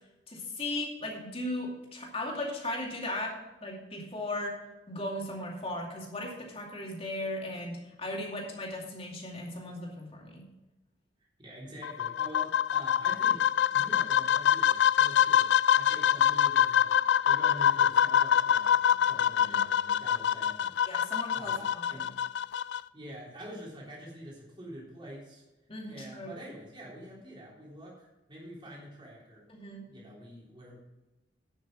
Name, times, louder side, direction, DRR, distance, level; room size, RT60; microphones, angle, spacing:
voice 1, 0.3-3.3 3.6-4.5 4.9-10.4 19.4-19.6 20.9-22.1 25.7-26.4 29.5-29.9, left 1 dB, 35° left, -1 dB, 2.4 m, -37 dB
voice 2, 11.4-17.0 17.2-20.8 21.3-22.2 22.9-25.4 25.9-29.4 29.8-30.7, equal, 30° right, -5 dB, 3.6 m, -46 dB
sound 1, 11.8-22.8, left 9 dB, 70° left, 0.3 m, -25 dB
11.0 x 6.4 x 6.1 m, 1.0 s
head